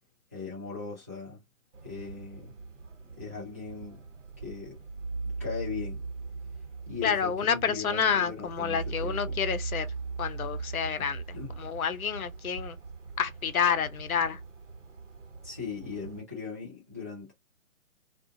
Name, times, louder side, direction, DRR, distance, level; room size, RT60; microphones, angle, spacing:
voice 1, 0.3-1.4 1.8-2.5 3.1-4.0 4.4-4.8 5.2-6.0 6.9-9.4 11.3-11.5 15.4-17.3, left 5 dB, 15° right, 0.4 m, -39 dB
sound 1, 1.7-16.2, right 4 dB, 60° right, 1.0 m, -40 dB
voice 2, 7.0-9.9 10.2-11.2 11.6-12.8 13.2-14.4, left 7 dB, 85° left, 0.6 m, -29 dB
2.4 x 2.3 x 2.6 m
figure-of-eight pair, 135°, 41 cm